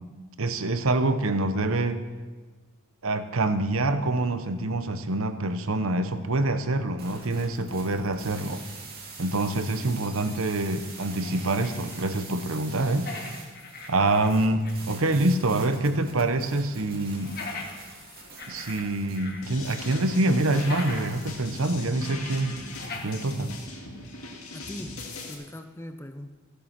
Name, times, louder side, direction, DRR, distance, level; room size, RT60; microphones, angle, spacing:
voice 1, 0.4-2.0 3.0-8.6 9.2-13.1 13.9-17.4 18.5-22.6 23.0-23.5, right 2 dB, 65° right, 9 dB, 0.9 m, -26 dB
sound 1, 7.0-21.8, right 4 dB, 40° right, 2.8 m, -45 dB
sound 2, 11.2-12.3 12.5-14.9 15.3-15.4 17.1-19.4 19.7-21.2 21.6-21.7 22.7-23.7, left 3 dB, 45° left, 1.5 m, -41 dB
sound 3, 19.4-25.3, left 2 dB, 75° left, 2.3 m, -40 dB
voice 2, 24.5-26.3, left 1 dB, 10° left, 8 dB, 0.5 m, -41 dB
15.0 x 8.5 x 5.9 m, 1.4 s
head